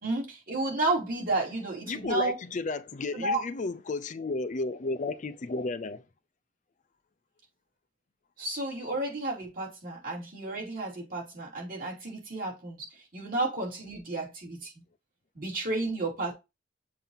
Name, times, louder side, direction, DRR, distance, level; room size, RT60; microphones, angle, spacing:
voice 1, 0.0-2.3 3.1-3.4 8.4-12.9 13.1-14.7 15.3-16.3, right 2 dB, 50° right, 2.9 m, -32 dB
voice 2, 1.9-6.0, left 3 dB, 40° left, 0.4 m, -33 dB
7.3 x 2.8 x 5.5 m
head